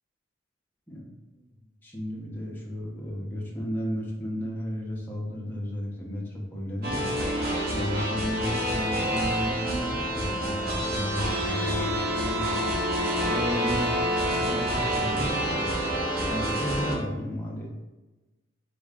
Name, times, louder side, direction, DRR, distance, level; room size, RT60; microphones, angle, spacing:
voice 1, 1.8-7.0 7.7-12.8 13.3-17.7, equal, 10° left, -4 dB, 0.9 m, -34 dB
sound 1, 6.8-16.9, equal, 55° right, 0.9 m, -27 dB
4.1 x 3.0 x 3.7 m, 1.1 s
head